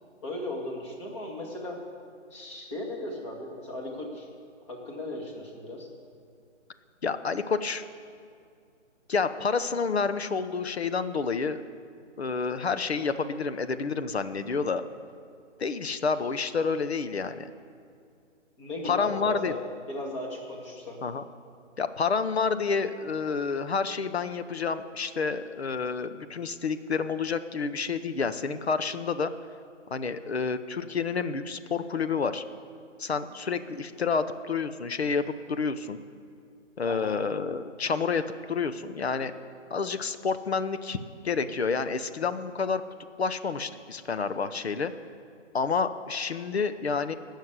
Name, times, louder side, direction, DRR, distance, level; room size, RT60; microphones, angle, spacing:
voice 1, 0.2-1.8 2.3-4.3 4.7-5.9 18.6-19.6 19.9-21.0 36.9-37.2, left 1 dB, 25° left, -1 dB, 2.2 m, -36 dB
voice 2, 7.0-7.8 9.1-11.6 12.2-14.8 15.6-17.5 18.8-19.5 21.0-21.2 21.8-29.3 29.9-32.4 33.0-36.0 36.8-38.2 38.5-39.3 39.7-41.0 41.2-42.8 43.2-44.9 45.5-47.1, left 5 dB, 55° left, 11 dB, 0.9 m, -29 dB
17.5 x 6.6 x 8.0 m, 2.3 s
figure-of-eight pair, 150°, 37 cm